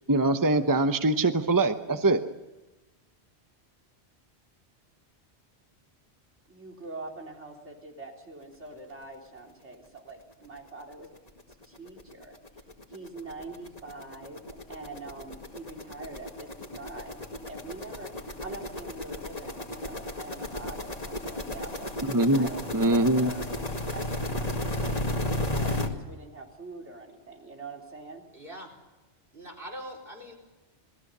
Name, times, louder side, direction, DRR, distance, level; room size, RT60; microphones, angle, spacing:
voice 1, 0.1-2.2 22.1-22.5 22.7-23.3, right 2 dB, 20° right, 8 dB, 1.0 m, -23 dB
voice 2, 6.5-11.1 11.6-12.3 12.9-14.4 14.7-17.2 17.5-18.1 18.4-21.9 22.3-23.4 23.9-28.2, right 3 dB, 90° right, 1 dB, 4.0 m, -44 dB
sound 1, 10.4-10.5 10.9-11.0 11.3-25.9, left 1 dB, 35° left, 2.2 m, -34 dB
voice 3, 28.3-28.8 29.3-30.4, equal, 50° right, 1 dB, 4.8 m, -42 dB
27.0 x 19.5 x 6.8 m, 1.1 s
omnidirectional pair, 1.2 m